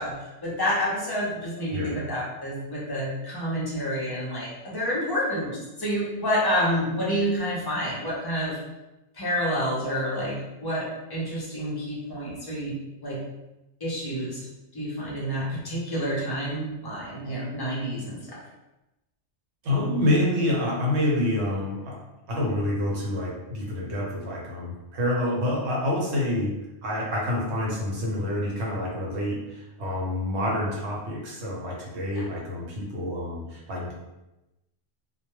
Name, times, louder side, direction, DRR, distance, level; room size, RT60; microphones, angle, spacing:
voice 1, 0.0-8.6 9.1-13.3 13.8-14.5 14.7-18.4, equal, 30° left, -5 dB, 0.5 m, -29 dB
voice 2, 19.6-22.0 22.3-26.5 26.8-33.9, left 1 dB, 70° right, -3 dB, 1.0 m, -27 dB
2.2 x 2.2 x 3.0 m, 0.97 s
omnidirectional pair, 1.2 m